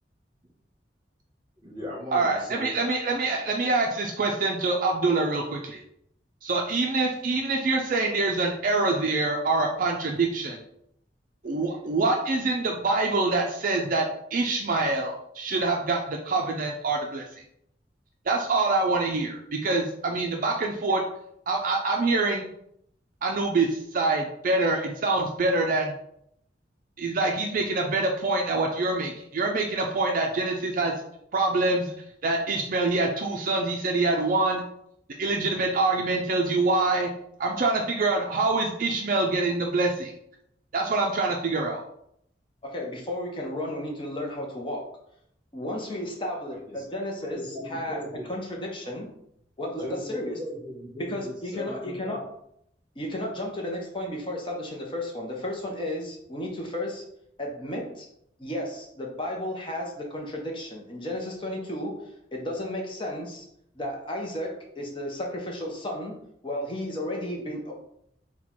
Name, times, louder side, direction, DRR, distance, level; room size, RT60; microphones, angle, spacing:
voice 1, 1.6-2.7 46.7-46.8 47.3-48.3 49.8-52.2, left 1 dB, 25° right, -4 dB, 1.4 m, -38 dB
voice 2, 2.1-5.8 6.4-10.6 11.4-14.1 14.3-17.2 18.3-21.0 21.5-22.5 23.2-25.9 27.0-31.0 31.3-31.9 32.2-34.6 35.2-37.1 37.4-40.1 40.7-41.8, right 3 dB, 50° right, 2 dB, 0.4 m, -25 dB
voice 3, 42.6-44.9 45.5-47.4 47.6-48.0 48.3-49.1 49.6-50.4 51.0-52.2 53.0-57.0 57.4-58.1 58.4-62.0 62.3-63.5 63.7-66.2 66.4-67.7, left 1 dB, 30° left, 0 dB, 0.7 m, -33 dB
4.3 x 2.2 x 4.3 m, 0.74 s
head